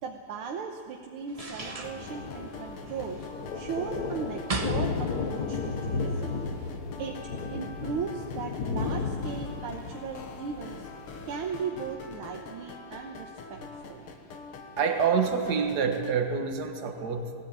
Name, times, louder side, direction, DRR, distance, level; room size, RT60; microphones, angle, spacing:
voice 1, 0.0-3.2 3.5-6.4 7.0-7.2 7.5-10.9 11.3-14.0, right 6 dB, 75° right, 2 dB, 1.9 m, -37 dB
sound 1, 1.3-6.8, right 2 dB, 30° right, 0.7 m, -40 dB
sound 2, 1.4-16.2, left 4 dB, 90° left, 2.3 m, -45 dB
Thunder, 1.6-11.6, left 4 dB, 50° left, 1.6 m, -34 dB
voice 2, 14.8-17.4, right 6 dB, 50° right, 5 dB, 1.9 m, -27 dB
20.0 x 14.5 x 8.8 m, 2.3 s
omnidirectional pair, 2.4 m